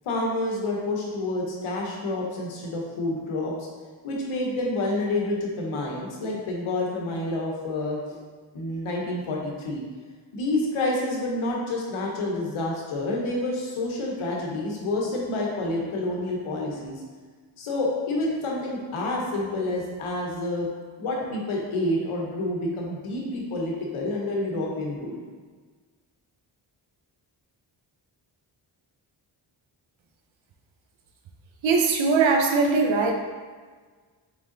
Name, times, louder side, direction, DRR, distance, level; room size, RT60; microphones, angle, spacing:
voice 1, 0.0-3.5 4.0-8.2 8.5-9.8 10.3-17.0 17.6-20.7 21.0-25.2, left 2 dB, 75° left, -2 dB, 1.2 m, -28 dB
voice 2, 31.6-33.1, right 4 dB, 65° right, 3 dB, 0.8 m, -21 dB
3.7 x 3.6 x 3.9 m, 1.5 s
supercardioid pair, 50°, 50 cm